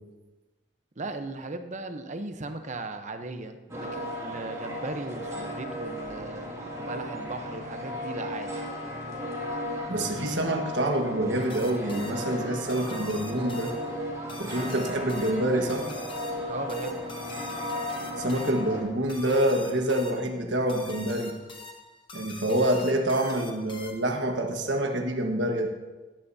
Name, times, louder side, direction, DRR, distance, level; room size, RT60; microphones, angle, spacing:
voice 1, 1.0-8.5 16.4-17.1, right 2 dB, 40° right, 7 dB, 0.8 m, -37 dB
sound 1, 3.7-18.8, equal, 15° right, 2.3 m, -35 dB
voice 2, 9.9-13.8 14.4-15.9 18.2-21.3 22.1-25.7, right 1 dB, 70° right, 3 dB, 1.5 m, -27 dB
sound 2, 11.5-24.3, left 2 dB, 25° left, 1.0 m, -45 dB
16.5 x 10.5 x 2.8 m, 1.2 s
head